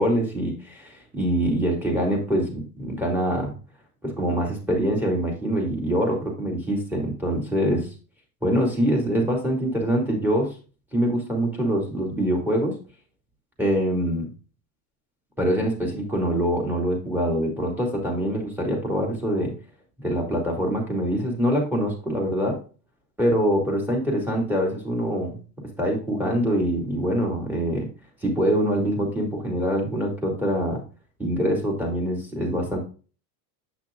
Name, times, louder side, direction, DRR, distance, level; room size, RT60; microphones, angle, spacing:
voice 1, 0.0-3.5 4.0-7.9 8.4-10.5 10.9-12.8 13.6-14.3 15.4-19.5 20.0-22.6 23.2-25.4 25.8-27.9 28.2-30.8 31.2-32.8, equal, 5° right, 0 dB, 2.4 m, -24 dB
8.0 x 6.0 x 2.5 m, 0.35 s
cardioid pair, 145°, 44 cm